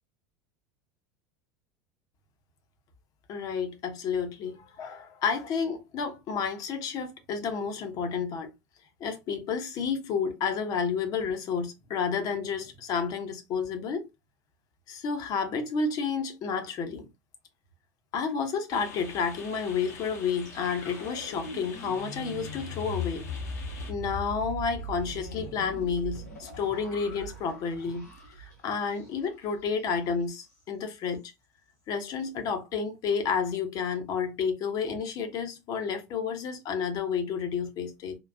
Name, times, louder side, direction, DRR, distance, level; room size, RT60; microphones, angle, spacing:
voice 1, 3.3-8.5 9.0-14.1 14.9-17.1 18.1-23.3 23.9-28.1 28.4-31.3 31.9-38.2, left 6 dB, 45° left, 0.9 m, -31 dB
sound 1, 18.7-23.9, left 3 dB, 70° left, 1.0 m, -46 dB
sound 2, 20.4-29.4 29.7-29.9 30.2-30.6, left 1 dB, 90° left, 2.0 m, -40 dB
3.8 x 2.5 x 2.4 m
figure-of-eight pair, 80°, 9 cm